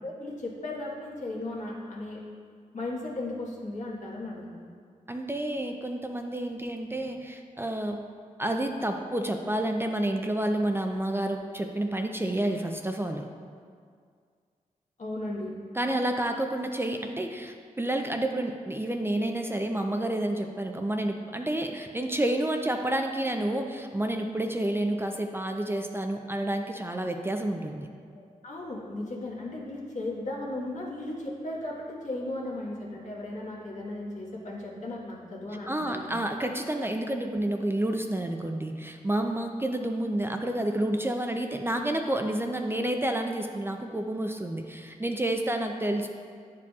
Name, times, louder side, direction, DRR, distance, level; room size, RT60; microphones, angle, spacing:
voice 1, 0.0-2.2 2.7-4.6 15.0-15.5 28.1-36.1, left 2 dB, 60° left, -4 dB, 1.4 m, -36 dB
voice 2, 5.1-8.0 8.4-13.3 15.7-27.9 35.7-46.1, right 1 dB, 15° right, 4 dB, 0.4 m, -29 dB
9.4 x 4.7 x 2.4 m, 2.1 s
cardioid pair, 50°, 14 cm